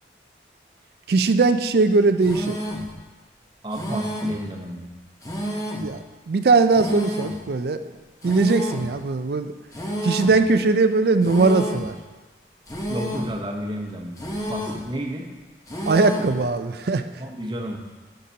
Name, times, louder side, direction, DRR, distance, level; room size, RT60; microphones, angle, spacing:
voice 1, 1.1-2.6 5.8-6.0 6.3-7.8 8.2-9.5 10.0-11.9 15.9-17.0, right 3 dB, 60° right, 10 dB, 0.4 m, -20 dB
sound 1, 2.2-2.9 3.7-4.4 5.2-5.9 6.7-7.4 8.2-8.9 9.7-10.4 11.2-11.9 12.7-13.4 14.2-14.9 15.7-16.4, equal, 20° left, 1.0 m, -30 dB
voice 2, 3.6-4.9 12.9-15.3 17.2-17.8, equal, 25° right, 0 dB, 0.9 m, -31 dB
11.5 x 6.7 x 2.8 m, 1.2 s
head